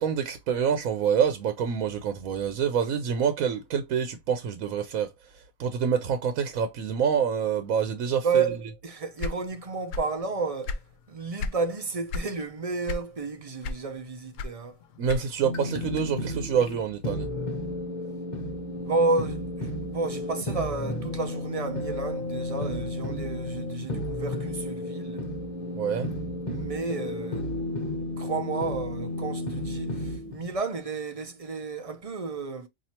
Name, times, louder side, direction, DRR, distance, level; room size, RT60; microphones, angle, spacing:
voice 1, 0.0-5.1 5.6-8.4 15.0-17.3 25.8-26.1, right 7 dB, 80° right, 1.1 m, -26 dB
voice 2, 8.2-10.8 11.1-14.8 18.8-25.2 26.5-27.5 28.2-32.7, right 4 dB, 45° right, 0.5 m, -31 dB
sound 1, 9.2-10.2 10.5-11.6 12.1-12.4 12.8-13.3 13.6-15.5, left 3 dB, 75° left, 0.9 m, -33 dB
sound 2, 15.4-30.6, left 1 dB, 35° left, 0.9 m, -33 dB
4.2 x 2.7 x 2.8 m
omnidirectional pair, 1.4 m